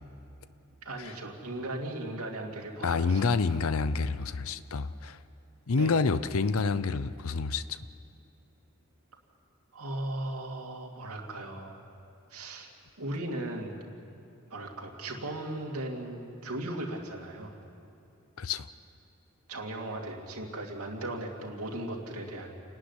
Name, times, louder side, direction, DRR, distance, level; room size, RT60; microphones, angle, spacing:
voice 1, 0.8-3.6 5.7-5.9 9.7-11.8 12.3-12.7 13.0-13.8 14.5-17.6 19.5-22.6, right 1 dB, 85° right, 0 dB, 2.7 m, -37 dB
voice 2, 2.8-5.2 5.7-7.8 18.4-18.7, left 4 dB, 75° left, 14 dB, 0.6 m, -28 dB
28.5 x 11.5 x 9.9 m, 2.7 s
head